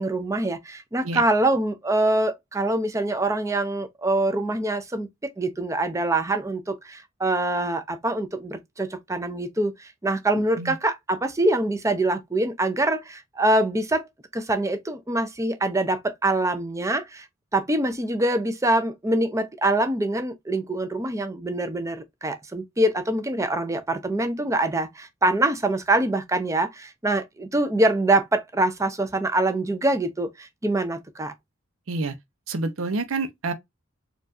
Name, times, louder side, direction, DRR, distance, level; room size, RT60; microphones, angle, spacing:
voice 1, 0.0-5.1 5.4-14.1 14.3-17.3 17.5-31.3, right 2 dB, 15° right, 0.5 m, -24 dB
voice 2, 32.5-33.5, right 3 dB, 90° right, 0.6 m, -28 dB
4.3 x 2.4 x 2.5 m
head